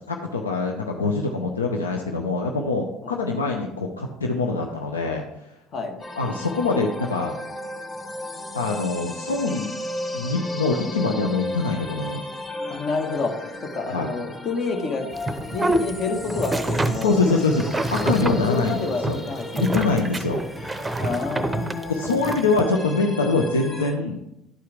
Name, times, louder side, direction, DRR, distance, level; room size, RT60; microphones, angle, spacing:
voice 1, 0.1-5.2 6.2-7.4 8.5-9.7 10.1-12.2 13.9-14.1 17.0-19.2 19.6-20.4 21.9-24.2, left 3 dB, 85° left, 2 dB, 0.6 m, -24 dB
sound 1, 6.0-23.9, left 1 dB, 25° left, 2.2 m, -35 dB
voice 2, 12.7-13.3 13.7-15.1 15.4-17.2 18.2-19.7 21.0-22.5, left 4 dB, 50° left, 4 dB, 1.3 m, -29 dB
sound 2, 15.1-22.6, right 2 dB, 15° right, 0.7 m, -27 dB
11.5 x 4.6 x 3.4 m, 0.85 s
hypercardioid pair, 65°, 0 cm